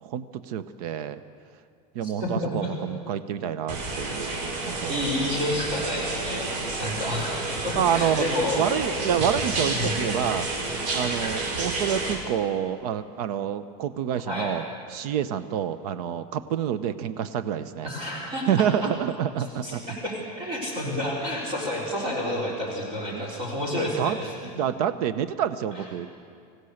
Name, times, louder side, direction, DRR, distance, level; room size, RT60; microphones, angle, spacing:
voice 1, 0.0-1.2 1.9-5.0 7.8-8.3 8.6-10.5 10.9-14.6 14.9-17.9 18.5-19.8 23.1-23.3 23.7-24.2 24.4-26.1, right 9 dB, 70° right, 12 dB, 0.9 m, -28 dB
voice 2, 2.0-2.7 4.1-4.3 4.9-6.5 6.8-8.6 9.7-10.1 14.2-14.5 17.8-18.7 19.6-24.3 25.7-25.8, left 1 dB, 25° right, -4 dB, 4.0 m, -30 dB
sound 1, 3.7-12.1, right 2 dB, 90° right, 5.7 m, -30 dB
24.5 x 16.5 x 6.6 m, 2.3 s
supercardioid pair, 170°, 20 cm